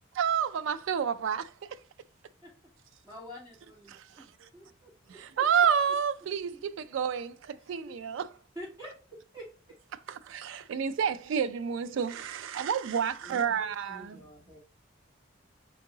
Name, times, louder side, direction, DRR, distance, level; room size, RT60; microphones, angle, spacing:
voice 1, 0.1-1.8 3.9-4.5 5.1-8.3 10.1-14.2, right 7 dB, 75° right, 0.3 m, -30 dB
voice 2, 3.0-4.0 4.5-5.4 7.6-7.9 8.5-8.9 9.3-9.4, equal, 15° right, 2.4 m, -46 dB
voice 3, 13.2-14.6, right 1 dB, 5° left, 1.0 m, -50 dB
4.5 x 2.9 x 3.8 m
head